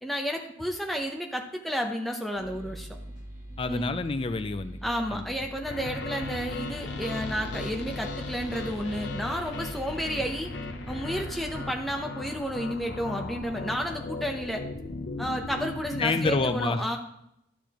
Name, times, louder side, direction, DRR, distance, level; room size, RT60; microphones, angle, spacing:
voice 1, 0.0-2.9 3.7-3.9 4.8-10.5 10.9-14.6 15.2-17.0, equal, ahead, 2 dB, 0.8 m, -31 dB
sound 1, 2.4-12.2, right 1 dB, 45° right, 1.4 m, -43 dB
voice 2, 3.6-5.5 16.0-17.0, left 3 dB, 30° left, 11 dB, 0.4 m, -29 dB
sound 2, 5.7-16.4, left 3 dB, 65° left, 0.7 m, -37 dB
12.0 x 6.5 x 3.0 m, 0.78 s
head